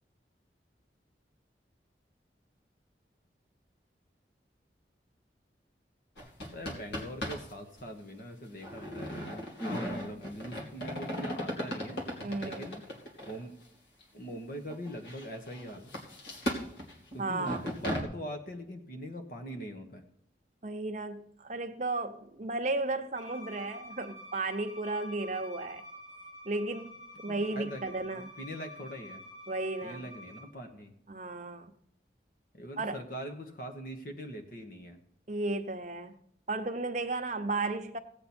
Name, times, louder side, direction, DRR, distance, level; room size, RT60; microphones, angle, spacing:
sound 1, 6.2-7.5 7.8-7.9 8.6-13.4 14.0-14.1 14.7-18.0, equal, 70° left, 2.7 m, -37 dB
voice 1, 6.5-12.8 13.2-13.5 14.1-15.9 17.1-20.1 27.3-29.2 29.8-31.0 32.5-35.0, equal, 50° left, 1.3 m, -42 dB
voice 2, 12.2-12.7 17.2-17.6 20.6-25.8 26.4-28.3 29.5-30.0 31.1-31.7 32.8-33.0 35.3-36.1 36.5-38.0, right 2 dB, 40° right, 0.9 m, -34 dB
Bowed string instrument, 23.2-30.4, equal, 35° left, 5.9 m, -48 dB
17.0 x 8.4 x 4.4 m
head